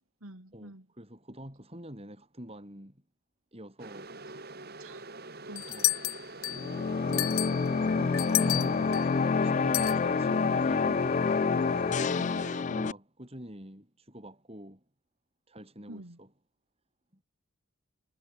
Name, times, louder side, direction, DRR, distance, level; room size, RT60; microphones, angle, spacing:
voice 1, 0.0-0.9 4.8-5.1 5.5-5.9 7.1-7.4 15.9-16.2, right 1 dB, 75° right, 3.2 m, -47 dB
voice 2, 0.5-3.0 3.5-4.2 5.7-5.9 7.4-7.6 7.9-9.1 9.4-11.2 11.8-12.3 12.7-14.8 15.5-16.3 17.1-17.2, equal, 25° right, 6.1 m, -46 dB
sound 1, 3.8-12.6, right 2 dB, 45° right, 3.1 m, -45 dB
sound 2, 5.6-6.7 7.1-9.1 9.7-10.0, left 16 dB, 75° left, 1.8 m, -30 dB
sound 3, 6.5-12.9, left 5 dB, 35° left, 0.3 m, -27 dB
head